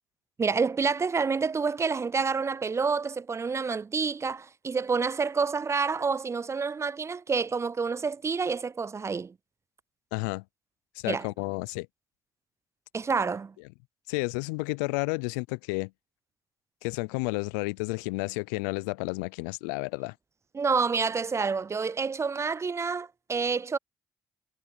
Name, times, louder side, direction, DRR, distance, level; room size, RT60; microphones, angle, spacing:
voice 1, 0.4-9.3 11.1-11.3 12.9-13.5 20.5-23.8, right 5 dB, 30° right, 0.3 m, -28 dB
voice 2, 10.1-10.4 11.0-11.9 14.1-15.9 16.8-20.1, left 28 dB, 90° left, 0.4 m, -31 dB
hypercardioid pair, 45°, 10 cm